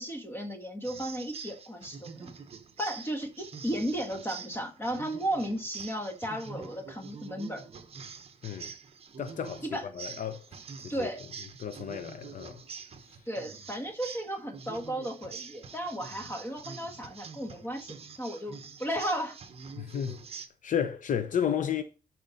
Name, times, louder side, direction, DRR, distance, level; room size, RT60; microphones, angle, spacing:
voice 1, 0.0-2.3 2.8-7.7 9.6-9.9 10.9-11.2 13.2-19.4, equal, 15° left, 1.6 m, -34 dB
sound 1, 0.8-20.5, right 5 dB, 40° right, 0.9 m, -45 dB
voice 2, 9.2-10.5 10.8-11.1 11.6-12.6 19.8-20.2 20.6-21.8, left 8 dB, 55° left, 0.6 m, -32 dB
11.5 x 4.4 x 4.1 m
wide cardioid pair, 145°, 16 cm